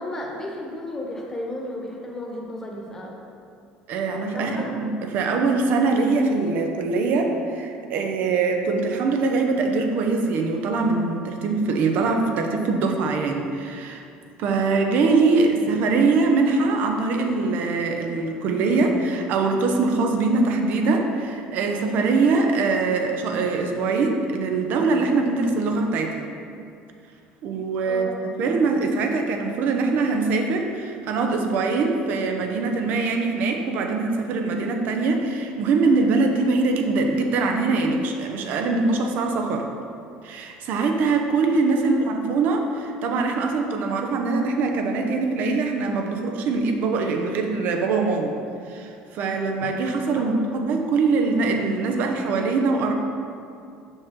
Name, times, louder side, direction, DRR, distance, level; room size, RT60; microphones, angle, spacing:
voice 1, 0.0-3.2 4.3-4.7 15.3-15.9 27.9-28.2 41.8-42.1 49.6-49.7 50.1-50.6, left 1 dB, 15° left, -2 dB, 1.2 m, -34 dB
voice 2, 3.9-14.0 14.4-26.3 27.4-39.7 40.2-48.4 48.7-52.9, right 3 dB, 60° right, 3 dB, 0.7 m, -23 dB
5.9 x 5.4 x 3.7 m, 2.5 s
supercardioid pair, 110°, 3 cm